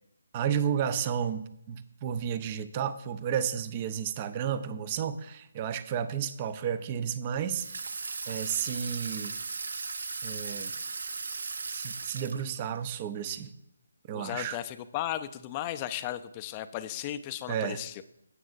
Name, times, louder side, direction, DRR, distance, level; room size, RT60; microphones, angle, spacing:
voice 1, 0.3-7.7 8.3-9.3 10.2-10.7 11.7-13.5 14.1-14.6 17.5-17.8, right 8 dB, 25° right, 13 dB, 0.6 m, -32 dB
Water tap faucet / Sink (filling or washing), 7.5-12.8, right 4 dB, 65° right, 0.6 m, -37 dB
voice 2, 14.1-18.0, left 12 dB, 25° left, 11 dB, 0.5 m, -35 dB
15.5 x 8.0 x 2.6 m, 0.80 s
figure-of-eight pair, 155°, 0 cm